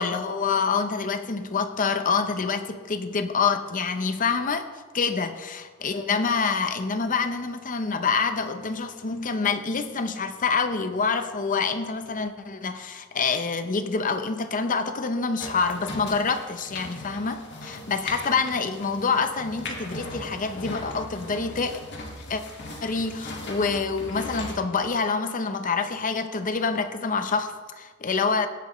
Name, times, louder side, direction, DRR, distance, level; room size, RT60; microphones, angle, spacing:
voice 1, 0.0-4.7 4.9-21.9 22.3-22.4 22.8-28.5, left 5 dB, 40° left, 9 dB, 0.7 m, -26 dB
sound 1, 15.4-24.5, left 2 dB, 55° left, 1.9 m, -39 dB
17.5 x 8.3 x 3.1 m, 1.4 s
head